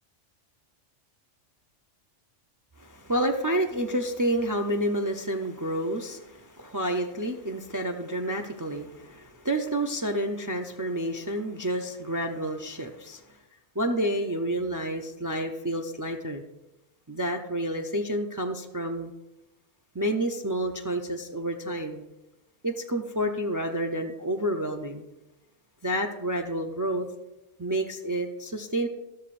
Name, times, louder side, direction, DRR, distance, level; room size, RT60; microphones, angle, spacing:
voice 1, 2.8-13.2 13.8-16.4 17.1-19.1 19.9-22.0 22.6-25.0 25.8-27.1 27.6-28.9, right 1 dB, 25° right, 4 dB, 0.4 m, -29 dB
13.0 x 12.5 x 2.5 m, 0.97 s
omnidirectional pair, 1.2 m